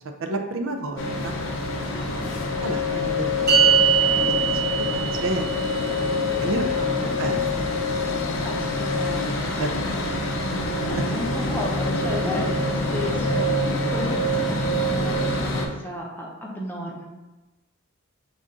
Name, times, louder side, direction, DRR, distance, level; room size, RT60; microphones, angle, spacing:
voice 1, 0.2-1.4 2.6-3.6 3.9-5.8 6.4-7.7 9.1-9.9 10.8-10.9, right 2 dB, 65° right, 5 dB, 0.5 m, -31 dB
sound 1, 1.0-15.7, left 2 dB, 70° left, 0.6 m, -25 dB
sound 2, 3.5-10.0, right 7 dB, 50° right, 1.0 m, -25 dB
voice 2, 5.9-7.2 8.4-8.7 8.9-9.3 10.9-17.0, left 1 dB, 10° left, -2 dB, 0.6 m, -34 dB
5.4 x 2.4 x 3.7 m, 1.1 s
head